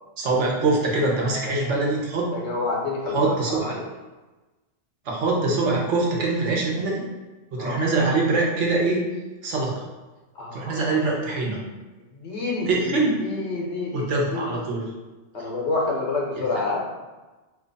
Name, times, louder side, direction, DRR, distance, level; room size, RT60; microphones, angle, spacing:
voice 1, 0.2-2.3 3.1-3.7 5.1-7.0 7.5-9.0 9.4-9.8 10.5-11.6 12.7-13.2 13.9-14.8, right 3 dB, 75° right, -2 dB, 1.1 m, -23 dB
voice 2, 1.2-1.7 2.3-3.8 7.6-7.8 10.3-10.9 12.1-14.6 15.3-16.8, left 3 dB, 75° left, -2 dB, 1.1 m, -29 dB
3.0 x 2.3 x 3.9 m, 1.2 s
omnidirectional pair, 1.2 m